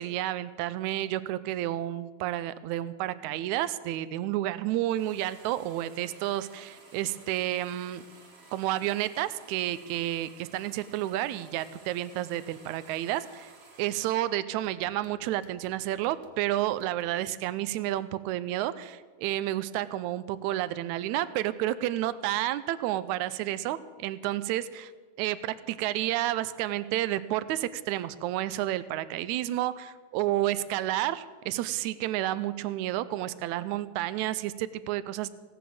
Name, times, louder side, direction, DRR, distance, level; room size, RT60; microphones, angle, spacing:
voice 1, 0.0-8.0 8.5-13.5 13.8-24.9 25.2-35.3, right 14 dB, 80° right, 15 dB, 2.0 m, -30 dB
sound 1, 4.9-14.3 14.6-17.1, right 3 dB, 35° right, 1.0 m, -55 dB
16.5 x 9.2 x 7.7 m, 1.4 s
omnidirectional pair, 3.4 m